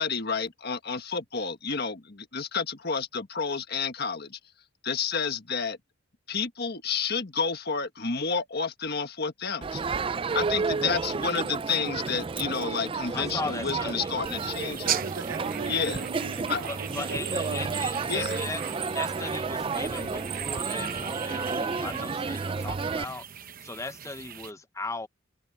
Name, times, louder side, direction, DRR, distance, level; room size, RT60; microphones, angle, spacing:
voice 1, 0.0-4.4 4.8-5.8 6.3-9.8 10.3-15.0 15.7-16.0 16.5-16.6 18.1-18.4, left 5 dB, 50° left, 1.6 m, -30 dB
Crowd, 9.6-23.0, right 4 dB, 25° right, 0.3 m, -31 dB
voice 2, 13.1-14.1 16.6-18.6 18.9-23.2 23.6-25.1, left 3 dB, 15° left, 0.6 m, -37 dB
sound 1, 14.3-24.5, right 10 dB, 40° right, 0.9 m, -39 dB
voice 3, 14.8-17.7, right 5 dB, 75° right, 0.7 m, -39 dB
head